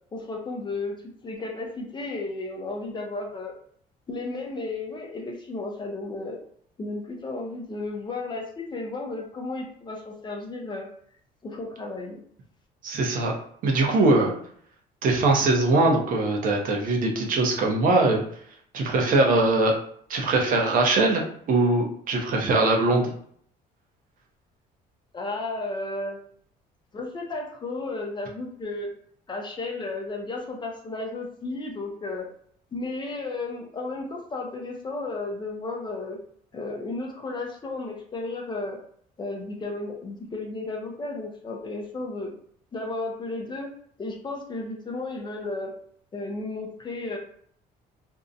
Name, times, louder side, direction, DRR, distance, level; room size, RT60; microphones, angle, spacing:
voice 1, 0.1-3.5 4.1-6.4 6.8-10.9 11.4-12.2 25.1-26.2 26.9-28.9 29.3-32.3 32.7-36.2 36.5-38.8 39.2-42.3 42.7-43.7 44.0-45.7 46.1-47.2, left 2 dB, 25° left, 1 dB, 0.5 m, -33 dB
voice 2, 12.8-13.3 13.6-14.3 15.0-18.2 18.7-19.7 20.1-23.1, right 2 dB, 55° right, 1 dB, 0.6 m, -21 dB
2.6 x 2.0 x 2.6 m, 0.62 s
cardioid pair, 110°, 17 cm